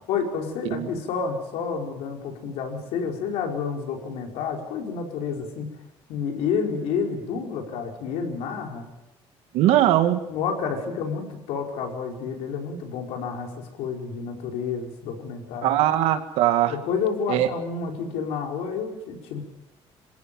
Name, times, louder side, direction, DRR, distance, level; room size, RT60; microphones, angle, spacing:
voice 1, 0.1-5.7 6.1-8.9 10.3-15.7 16.7-19.4, left 6 dB, 85° left, 2 dB, 4.9 m, -29 dB
voice 2, 9.5-10.2 15.6-16.8 17.3-17.5, right 12 dB, 85° right, 8 dB, 2.2 m, -20 dB
27.0 x 16.5 x 7.6 m, 0.92 s
cardioid pair, 180°, 10 cm